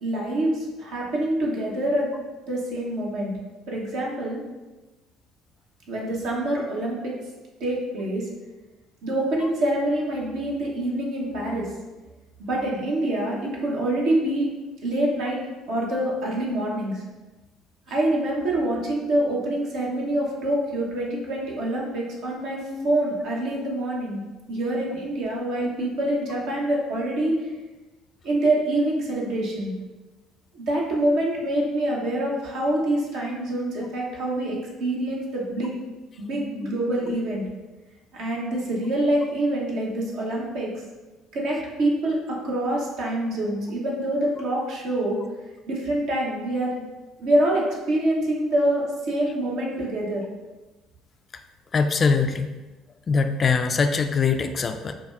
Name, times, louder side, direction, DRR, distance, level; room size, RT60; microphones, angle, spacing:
voice 1, 0.0-2.1 2.5-3.3 3.7-4.4 5.9-7.1 7.6-8.3 9.0-11.7 12.4-14.5 14.8-15.4 15.7-17.0 17.9-24.2 24.5-27.5 28.2-29.7 30.5-35.8 36.2-37.4 38.1-40.7 41.3-45.2 45.7-46.8 47.2-50.2, right 1 dB, 65° right, -3 dB, 0.8 m, -25 dB
voice 2, 51.7-52.5 53.1-54.9, left 5 dB, 40° left, 7 dB, 0.3 m, -23 dB
4.7 x 2.2 x 2.3 m, 1.2 s
hypercardioid pair, 55°, 0 cm